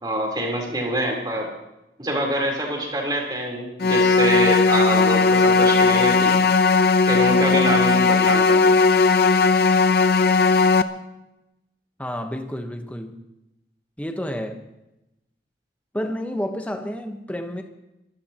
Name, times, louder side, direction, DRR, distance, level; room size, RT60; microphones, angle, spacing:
voice 1, 0.0-1.5 2.0-6.3 7.1-9.0, right 1 dB, 25° right, 0 dB, 3.8 m, -25 dB
sound 1, 3.8-10.8, left 4 dB, 60° left, 0.8 m, -17 dB
voice 2, 12.0-13.2 14.0-14.6 15.9-17.6, equal, 10° left, 5 dB, 1.1 m, -30 dB
24.5 x 16.0 x 3.0 m, 0.92 s
head